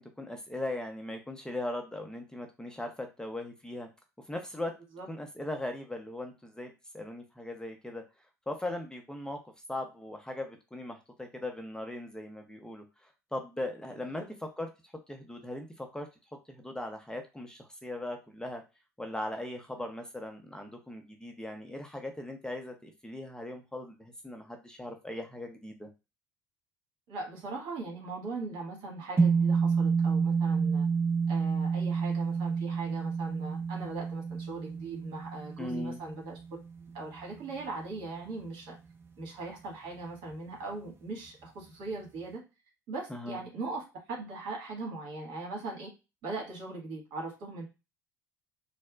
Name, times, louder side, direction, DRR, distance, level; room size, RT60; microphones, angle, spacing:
voice 1, 0.0-3.9 4.3-4.7 5.1-8.0 8.5-9.4 9.7-14.7 15.1-16.1 16.5-18.6 19.0-25.9 35.6-36.0 43.1-43.4, left 1 dB, 10° left, 3 dB, 0.6 m, -39 dB
voice 2, 27.1-30.9 31.3-36.4 36.9-38.8 39.2-42.4 42.9-45.9 46.2-47.6, right 3 dB, 60° right, -1 dB, 1.5 m, -39 dB
sound 1, 29.2-37.6, right 5 dB, 25° right, 0.9 m, -29 dB
4.1 x 2.0 x 2.3 m, 0.28 s
hypercardioid pair, 65°, 10 cm